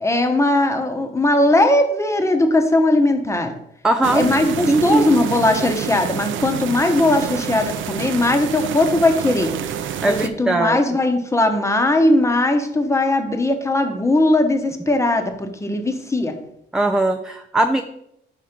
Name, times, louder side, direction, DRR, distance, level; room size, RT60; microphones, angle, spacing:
voice 1, 0.0-3.5 4.1-9.5 10.0-16.3, left 2 dB, 15° left, 5 dB, 1.0 m, -19 dB
voice 2, 3.8-4.3 4.7-5.1 10.0-10.8 16.7-17.8, right 2 dB, 5° right, 5 dB, 0.4 m, -19 dB
sound 1, 4.0-10.3, right 9 dB, 75° right, 0.5 m, -28 dB
5.0 x 4.4 x 5.1 m, 0.75 s
cardioid pair, 90°, 20 cm